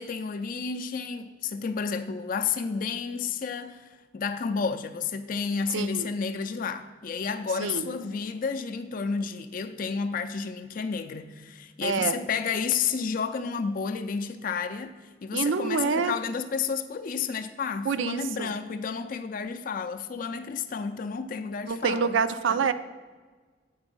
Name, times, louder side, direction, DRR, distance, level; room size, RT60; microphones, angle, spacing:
voice 1, 0.0-22.2 22.5-22.7, left 5 dB, 45° left, 0.4 m, -31 dB
voice 2, 5.7-6.1 7.6-7.9 11.8-12.2 15.3-16.1 17.9-18.5 21.7-22.7, right 5 dB, 80° right, 0.5 m, -27 dB
7.9 x 5.0 x 5.3 m
head